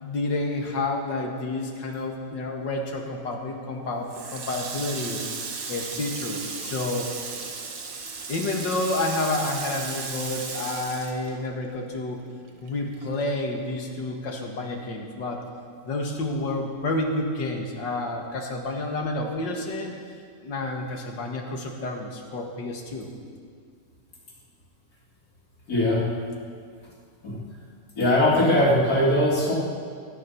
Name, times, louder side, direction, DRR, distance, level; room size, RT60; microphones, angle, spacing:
voice 1, 0.0-5.2 5.7-7.1 8.3-12.2 12.6-15.4 15.8-20.0 20.4-23.1, left 2 dB, 90° left, 2 dB, 2.4 m, -29 dB
Water tap faucet, 4.1-11.9 12.3-13.6, right 5 dB, 90° right, 2.1 m, -35 dB
voice 2, 25.7-26.0 27.2-27.4 28.0-29.5, left 1 dB, 55° left, -4 dB, 3.7 m, -20 dB
22.0 x 9.9 x 6.0 m, 2.1 s
omnidirectional pair, 1.9 m